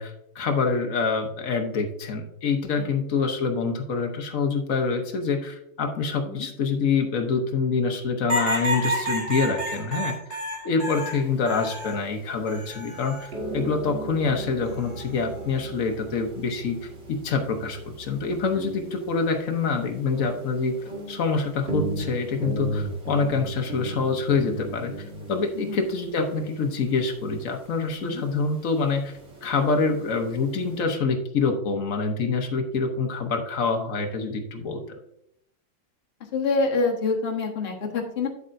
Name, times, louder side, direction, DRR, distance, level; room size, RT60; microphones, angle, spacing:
voice 1, 0.0-20.8 21.1-24.9 25.3-29.1 29.4-34.8, left 4 dB, 55° left, 5 dB, 0.9 m, -26 dB
sound 1, 8.3-12.0 12.5-13.3 14.6-15.0, right 1 dB, 10° right, 2.6 m, -30 dB
sound 2, 10.9-30.8, right 1 dB, 35° right, 1.9 m, -37 dB
voice 2, 36.3-38.3, left 3 dB, 35° left, 0 dB, 1.3 m, -27 dB
8.5 x 8.1 x 2.6 m, 0.76 s
omnidirectional pair, 2.3 m